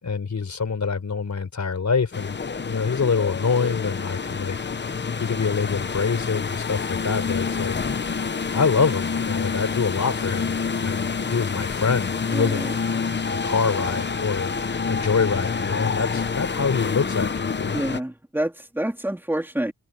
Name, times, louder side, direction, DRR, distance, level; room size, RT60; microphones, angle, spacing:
voice 1, 0.0-4.6 5.2-7.8 8.5-12.7 13.4-14.5 14.9-17.8, left 5 dB, 50° left, 4.3 m, -25 dB
sound 1, 2.1-18.0, left 5 dB, 30° left, 0.8 m, -28 dB
voice 2, 12.3-12.7 17.7-19.7, right 1 dB, 5° right, 3.4 m, -27 dB
wide cardioid pair, 150°, 36 cm